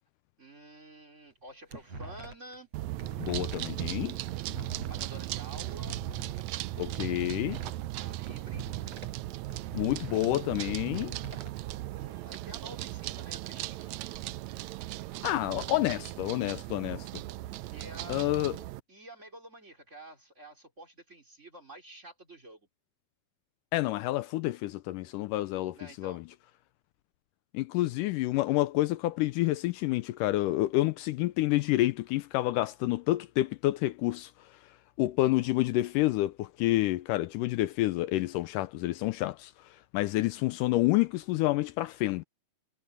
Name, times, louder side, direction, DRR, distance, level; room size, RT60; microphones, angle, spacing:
voice 1, 0.4-2.7 4.9-6.0 8.0-8.6 11.9-13.9 17.7-18.3 18.9-22.7 25.7-26.2, right 1 dB, 20° right, 3.8 m, -49 dB
sound 1, 1.3-2.6 2.8-6.4 6.8-9.2 9.5-11.5, right 3 dB, 50° right, 8.1 m, -44 dB
sound 2, 2.7-18.8, right 16 dB, 90° right, 1.5 m, -37 dB
voice 2, 3.2-4.2 6.8-7.6 9.7-11.2 15.2-17.1 18.1-18.6 23.7-26.2 27.5-34.3 35.0-39.5 39.9-42.2, left 17 dB, 80° left, 2.1 m, -28 dB
omnidirectional pair, 3.9 m